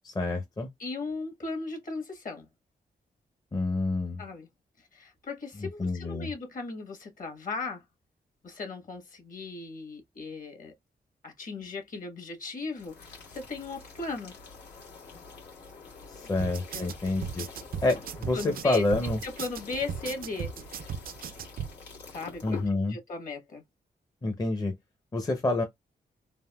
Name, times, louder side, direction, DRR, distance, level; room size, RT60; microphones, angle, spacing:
voice 1, 0.0-0.7 3.5-4.2 5.6-6.3 16.1-17.5 17.8-19.2 22.4-23.0 24.2-24.7 25.1-25.6, left 2 dB, 25° left, 0.6 m, -28 dB
voice 2, 0.8-2.5 4.2-4.5 4.9-7.8 8.4-10.7 11.2-14.3 16.7-16.9 17.1-17.2 18.3-18.8 19.2-20.9 22.1-23.6, left 3 dB, 55° left, 1.3 m, -37 dB
sound 1, 12.7-22.7, left 5 dB, 90° left, 1.6 m, -46 dB
sound 2, 16.4-21.7, right 7 dB, 60° right, 0.4 m, -37 dB
3.4 x 2.6 x 2.2 m
wide cardioid pair, 105°, 17 cm